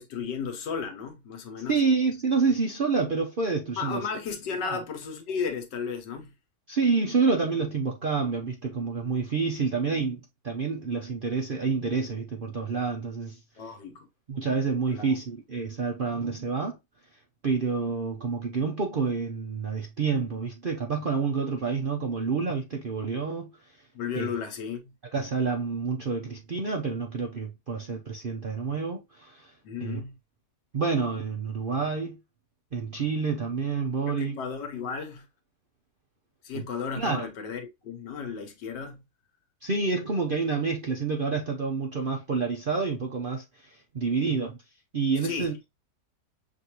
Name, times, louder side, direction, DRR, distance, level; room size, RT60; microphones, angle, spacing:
voice 1, 0.0-1.7 3.8-6.3 13.6-14.1 14.9-15.2 23.9-24.8 29.6-30.1 34.1-35.3 36.4-39.0 45.2-45.5, left 6 dB, 90° left, 1.7 m, -34 dB
voice 2, 1.7-4.1 4.6-4.8 6.7-13.4 14.3-16.8 17.4-23.5 24.1-24.3 25.1-29.5 29.8-30.0 30.7-32.2 32.7-34.4 36.5-36.6 37.0-37.2 39.6-44.6 44.9-45.7, right 4 dB, 60° right, 0.5 m, -28 dB
6.3 x 2.6 x 2.8 m
omnidirectional pair, 1.8 m